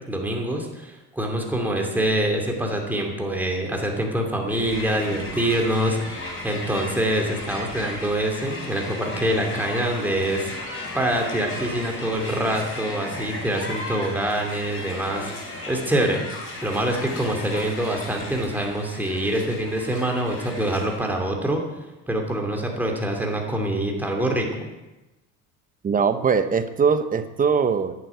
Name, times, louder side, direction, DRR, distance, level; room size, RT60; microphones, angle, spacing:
voice 1, 0.0-10.5 10.9-16.2 16.6-21.6 22.1-24.7, right 1 dB, 5° right, 1 dB, 2.7 m, -25 dB
Crowd, 4.5-21.2, left 2 dB, 35° left, 5.2 m, -35 dB
voice 2, 25.8-27.9, right 6 dB, 25° right, 10 dB, 0.9 m, -21 dB
11.5 x 9.5 x 9.2 m, 1.1 s
cardioid pair, 140°, 36 cm